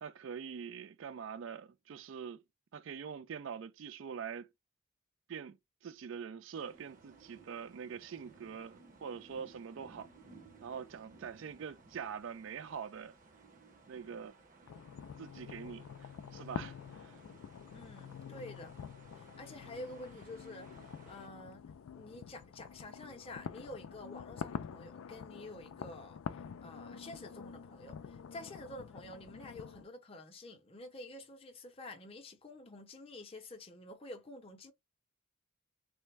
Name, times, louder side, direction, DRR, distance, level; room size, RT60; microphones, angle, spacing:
voice 1, 0.0-2.4 2.7-4.5 5.3-10.1 10.6-13.1 13.9-14.3 15.2-17.2, right 7 dB, 60° right, 0.3 m, -44 dB
sound 1, 6.5-21.3, right 3 dB, 35° right, 0.8 m, -60 dB
sound 2, 14.7-29.8, left 7 dB, 70° left, 0.3 m, -47 dB
voice 2, 17.7-18.7 19.1-34.7, left 1 dB, 25° left, 0.6 m, -49 dB
3.3 x 2.1 x 3.3 m
head